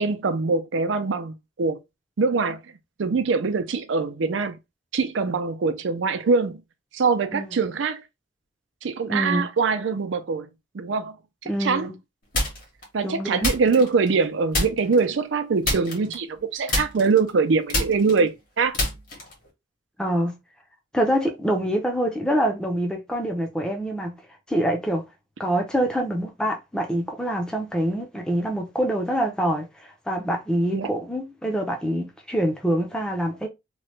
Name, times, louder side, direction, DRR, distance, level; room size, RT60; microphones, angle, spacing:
voice 1, 0.0-1.8 2.2-2.6 3.0-4.6 4.9-6.6 6.9-8.0 8.8-10.5 10.7-11.2 11.6-11.9 12.9-18.8 30.7-30.9, right 4 dB, 85° right, 0.5 m, -23 dB
voice 2, 9.1-9.5 11.5-12.0 13.0-13.5 20.0-20.4 20.9-24.2 24.5-25.1 25.4-33.5, right 1 dB, 5° left, 0.5 m, -25 dB
sound 1, 12.3-12.8 13.4-14.2 14.5-15.0 15.6-16.4 16.7-19.5, left 1 dB, 50° left, 1.3 m, -27 dB
3.0 x 2.2 x 3.1 m
head